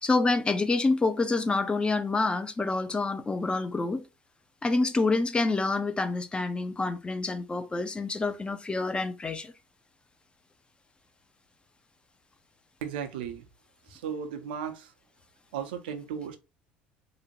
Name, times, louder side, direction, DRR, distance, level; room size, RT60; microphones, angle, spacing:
voice 1, 0.0-4.0 4.6-9.5, left 3 dB, 20° left, 0.4 m, -27 dB
voice 2, 12.8-13.4 13.9-14.9 15.5-16.4, right 8 dB, 70° right, 0.4 m, -35 dB
2.5 x 2.1 x 2.9 m
figure-of-eight pair, 65°, 5 cm